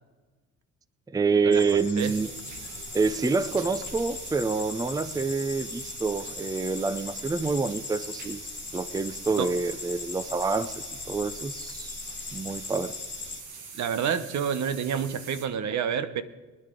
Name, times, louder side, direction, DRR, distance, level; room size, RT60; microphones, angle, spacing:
voice 1, 1.1-2.3 2.9-8.4 8.7-12.0 12.3-13.0, right 4 dB, 10° right, 14 dB, 0.5 m, -27 dB
sound 1, 1.5-13.4, left 5 dB, 35° left, 1.4 m, -40 dB
sound 2, 2.0-15.5, right 5 dB, 90° right, 1.9 m, -43 dB
voice 2, 13.8-16.2, right 7 dB, 65° right, 11 dB, 1.0 m, -28 dB
23.0 x 10.5 x 3.8 m, 1.3 s
cardioid pair, 90°, 30 cm